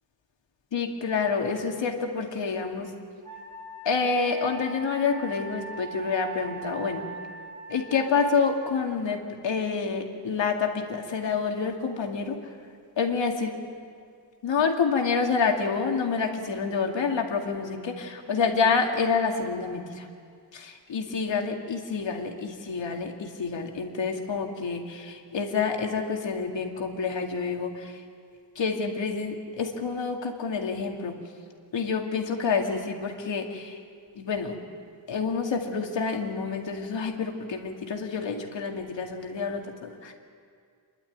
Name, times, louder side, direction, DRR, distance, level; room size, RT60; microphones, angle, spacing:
voice 1, 0.7-2.9 3.9-7.0 7.7-12.4 13.0-13.5 14.4-20.1 20.5-28.0 28.6-31.1 31.7-33.8 34.2-34.5 35.1-40.1, left 5 dB, 80° left, 2 dB, 2.3 m, -28 dB
Wind instrument woodwind instrument, 3.2-8.1, right 4 dB, 50° right, 2.8 m, -41 dB
28.5 x 12.0 x 9.2 m, 2.2 s
wide cardioid pair, 140°, 44 cm